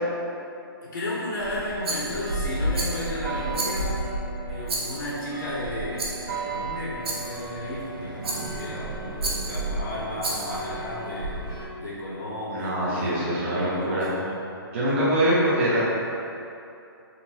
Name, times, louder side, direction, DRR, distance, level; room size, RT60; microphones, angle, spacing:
voice 1, 0.8-4.0 4.5-13.1 13.4-14.4, left 1 dB, 60° left, -7 dB, 0.9 m, -34 dB
sound 1, 1.4-11.7, right 2 dB, 60° right, 1.0 m, -32 dB
Rattle, 1.8-2.3 2.7-3.1 3.5-4.1 4.7-5.2 6.0-6.3 7.0-7.4 8.2-8.7 9.2-9.6 10.2-10.7, right 2 dB, 80° right, 0.9 m, -32 dB
voice 2, 12.5-14.1 14.7-15.8, right 1 dB, 30° right, -8 dB, 0.6 m, -23 dB
3.8 x 2.2 x 4.2 m, 2.7 s
hypercardioid pair, 170°, 13 cm